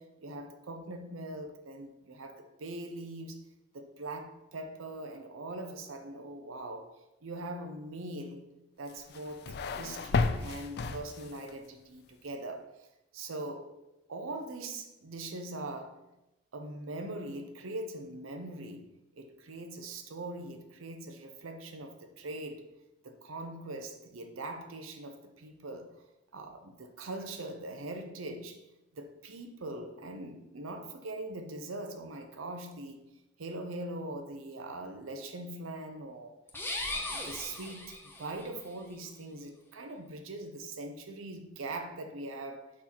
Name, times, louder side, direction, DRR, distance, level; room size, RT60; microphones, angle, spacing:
voice 1, 0.0-3.5 3.7-6.9 7.2-8.5 8.8-12.9 13.1-13.8 14.1-16.1 16.5-22.7 23.0-26.0 26.3-28.6 28.9-33.1 33.4-36.3 36.9-42.7, right 2 dB, 90° right, 0.7 m, -42 dB
sound 1, 8.9-11.6, left 4 dB, 55° left, 0.4 m, -33 dB
sound 2, 36.5-38.5, left 2 dB, 10° left, 0.7 m, -38 dB
6.1 x 4.4 x 4.3 m
head